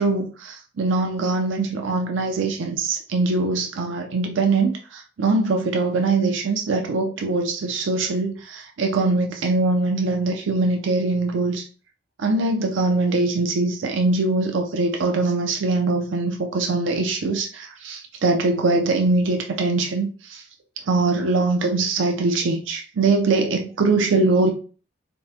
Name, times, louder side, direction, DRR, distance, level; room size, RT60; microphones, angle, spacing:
voice 1, 0.0-11.6 12.2-20.4 20.9-24.5, right 3 dB, 90° right, 0.5 m, -22 dB
3.4 x 2.0 x 2.7 m
head